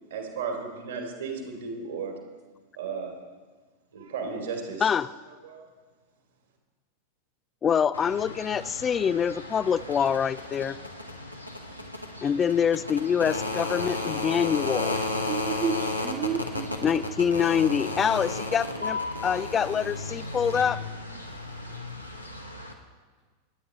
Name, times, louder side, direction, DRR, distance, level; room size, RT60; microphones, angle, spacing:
voice 1, 0.1-2.2 2.7-3.1 3.9-4.9 5.4-5.7, right 5 dB, 65° right, 2 dB, 2.8 m, -34 dB
voice 2, 7.6-10.8 12.2-15.0 16.8-20.8, left 7 dB, 20° left, 15 dB, 0.3 m, -25 dB
sound 1, 7.9-22.7, left 2 dB, 90° left, 1.2 m, -34 dB
voice 3, 15.3-17.3, right 7 dB, 35° right, 5 dB, 0.8 m, -32 dB
28.0 x 9.8 x 3.1 m, 1.4 s
figure-of-eight pair, 90°, 0 cm